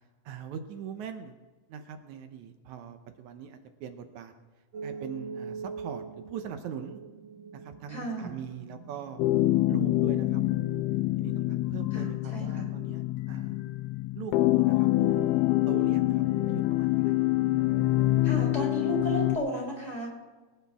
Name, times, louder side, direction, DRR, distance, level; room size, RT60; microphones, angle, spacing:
voice 1, 0.3-1.4 1.7-4.3 4.8-7.0 7.5-9.2 9.7-10.8 11.2-13.6 14.1-15.3 15.7-17.2, right 7 dB, 80° right, 8 dB, 2.2 m, -42 dB
sound 1, 4.7-11.7, right 5 dB, 60° right, 1.3 m, -44 dB
voice 2, 7.9-8.3 11.9-12.1 12.3-12.7 18.2-20.1, right 1 dB, 15° left, -4 dB, 3.9 m, -34 dB
sound 2, 9.2-19.4, left 16 dB, 85° left, 1.3 m, -26 dB
23.5 x 10.0 x 3.5 m, 1.3 s
omnidirectional pair, 3.3 m